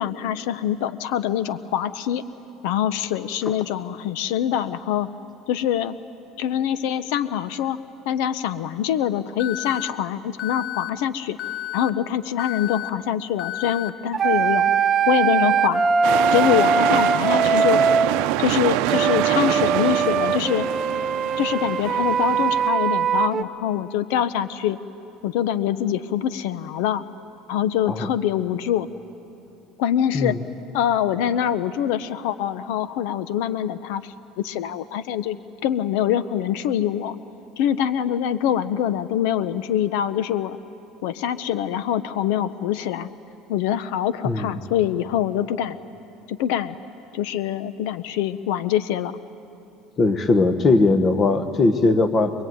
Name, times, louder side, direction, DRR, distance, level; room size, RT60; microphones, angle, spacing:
voice 1, 0.0-2.2 2.6-5.1 5.5-6.0 6.4-7.8 8.1-11.4 11.7-14.7 15.1-15.8 16.3-17.8 18.4-20.7 21.4-24.8 25.2-27.0 27.5-28.9 29.8-30.4 30.7-35.4 35.6-37.2 37.6-40.6 41.0-43.1 43.5-45.8 46.3-46.7 47.1-49.1, left 10 dB, 75° left, 14 dB, 0.8 m, -24 dB
Alarm, 9.4-9.9 10.4-10.9 11.4-11.9 12.4-12.9 13.4-13.9, left 13 dB, 40° left, 0.6 m, -31 dB
sound 1, 14.1-18.1 18.9-23.4, right 5 dB, 20° right, 0.6 m, -21 dB
sound 2, 16.0-22.7, right 15 dB, 70° right, 0.7 m, -25 dB
voice 2, 50.0-52.3, left 3 dB, 25° left, 9 dB, 1.1 m, -19 dB
25.0 x 22.0 x 9.3 m, 2.8 s
cardioid pair, 170°, 0 cm